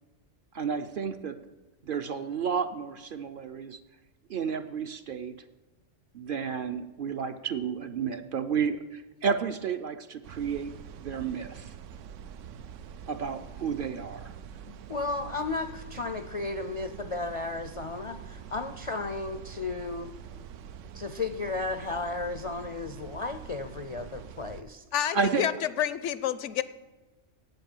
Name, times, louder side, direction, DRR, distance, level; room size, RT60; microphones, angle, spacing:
voice 1, 0.5-1.5 1.8-3.8 4.3-5.4 6.1-10.7 11.0-11.7 13.1-14.3 25.1-25.5, right 6 dB, 55° right, 8 dB, 0.7 m, -31 dB
sound 1, 10.2-24.6, right 8 dB, 90° right, 0.9 m, -45 dB
voice 2, 14.7-20.1 20.9-24.8, left 3 dB, 50° left, 8 dB, 0.4 m, -34 dB
voice 3, 24.9-25.5 25.8-26.6, left 10 dB, 80° left, 15 dB, 0.9 m, -28 dB
8.2 x 7.9 x 8.9 m, 1.1 s
omnidirectional pair, 1.2 m